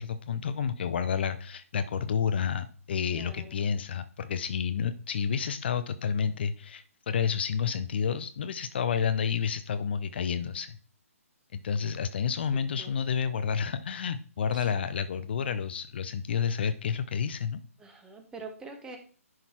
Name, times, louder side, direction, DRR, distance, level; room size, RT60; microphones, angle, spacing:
voice 1, 0.0-10.8 11.5-17.6, left 7 dB, 45° left, 11 dB, 0.5 m, -30 dB
voice 2, 3.1-3.6 12.5-12.9 14.5-14.7 17.8-19.0, right 3 dB, 10° right, 5 dB, 1.2 m, -45 dB
11.0 x 4.0 x 4.5 m, 0.41 s
figure-of-eight pair, 135°, 8 cm